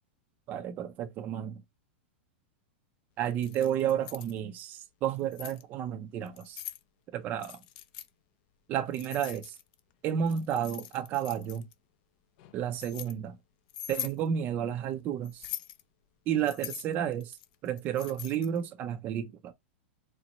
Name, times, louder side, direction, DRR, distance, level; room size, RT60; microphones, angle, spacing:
voice 1, 0.5-1.6 3.2-6.6 7.1-7.6 8.7-9.5 10.0-11.6 12.5-13.4 13.9-15.5 16.3-17.4 17.6-19.5, right 9 dB, 30° right, 0.4 m, -31 dB
Keys jangling, 3.3-4.3 5.0-5.6 6.3-6.8 7.4-8.1 8.9-9.8 10.3-11.7 12.4-13.1 13.7-14.2 15.2-15.8 16.4-18.6, left 12 dB, 45° left, 0.5 m, -42 dB
4.4 x 2.0 x 4.0 m
supercardioid pair, 150°, 6 cm